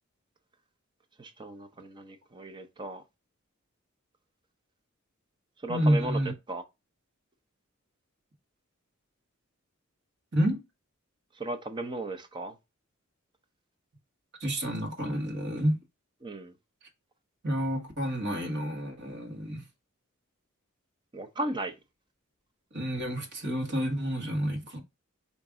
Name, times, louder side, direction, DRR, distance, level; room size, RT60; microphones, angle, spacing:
voice 1, 1.2-3.0 5.6-6.2 6.5-6.6 11.3-12.6 16.2-16.5 21.1-21.7, right 2 dB, 20° right, 0.6 m, -36 dB
voice 2, 5.7-6.3 10.3-10.6 14.4-15.8 17.4-19.6 22.7-24.8, equal, 60° right, 1.4 m, -29 dB
4.9 x 2.6 x 3.5 m
head